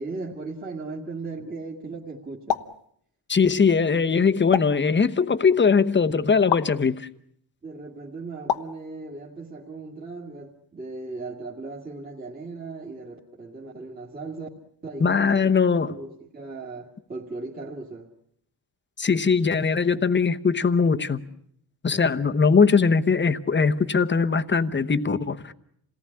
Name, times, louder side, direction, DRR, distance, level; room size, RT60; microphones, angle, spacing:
voice 1, 0.0-2.6 7.6-14.5 14.8-15.5 15.9-18.1, right 3 dB, 20° right, 2.2 m, -37 dB
sound 1, 2.5-2.8 4.5-4.9 6.5-6.7 8.5-8.8, left 9 dB, 85° left, 1.3 m, -26 dB
voice 2, 3.3-7.1 15.0-15.9 19.0-21.2 21.8-25.5, left 5 dB, 25° left, 1.0 m, -21 dB
28.0 x 18.5 x 9.8 m
wide cardioid pair, 170°, 41 cm